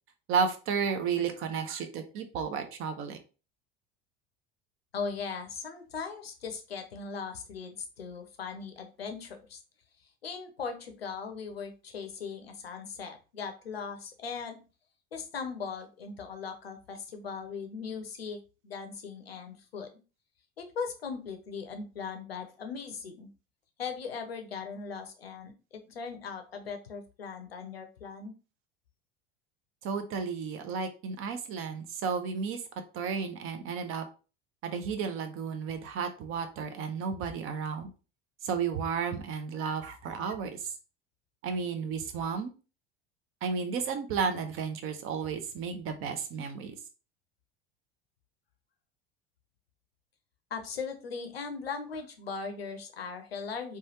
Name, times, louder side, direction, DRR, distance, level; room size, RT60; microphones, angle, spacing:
voice 1, 0.3-3.2 29.8-32.6 32.9-34.0 34.6-37.9 38.4-40.7 41.4-42.5 43.4-46.7, right 6 dB, 45° right, 8 dB, 0.6 m, -32 dB
voice 2, 4.9-9.6 10.2-14.6 15.1-18.4 18.6-19.9 20.6-23.3 23.8-28.3 50.5-53.8, left 5 dB, 90° left, 6 dB, 0.6 m, -39 dB
3.1 x 2.3 x 2.7 m, 0.34 s
figure-of-eight pair, 70°, 30 cm